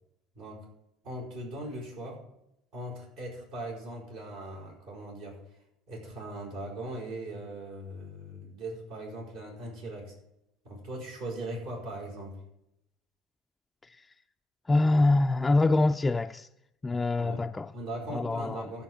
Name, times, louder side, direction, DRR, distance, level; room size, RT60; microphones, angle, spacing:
voice 1, 0.3-0.7 1.0-2.3 2.7-5.4 5.9-10.1 10.6-12.4 17.2-17.4 17.7-18.8, right 1 dB, 75° right, 5.1 m, -39 dB
voice 2, 14.7-16.5 16.8-17.7 18.1-18.7, left 2 dB, 20° left, 0.4 m, -25 dB
13.5 x 4.8 x 8.8 m
hypercardioid pair, 80°, 0 cm